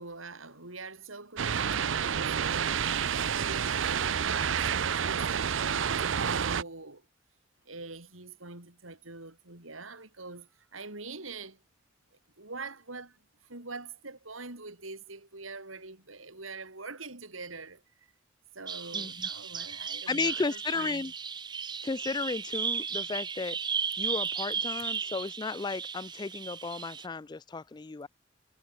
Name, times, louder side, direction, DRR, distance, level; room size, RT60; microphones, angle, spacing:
voice 1, 0.0-7.0 7.7-11.6 12.4-13.2 13.5-17.8 18.5-21.1, right 3 dB, 90° right, 5.3 m, -44 dB
sound 1, 1.4-6.6, right 7 dB, 70° right, 0.6 m, -29 dB
Bird vocalization bird call bird song, 18.7-27.1, right 6 dB, 20° right, 0.6 m, -35 dB
voice 2, 18.9-19.3 20.1-21.1 21.8-23.6 24.0-28.1, left 4 dB, 20° left, 0.4 m, -34 dB
head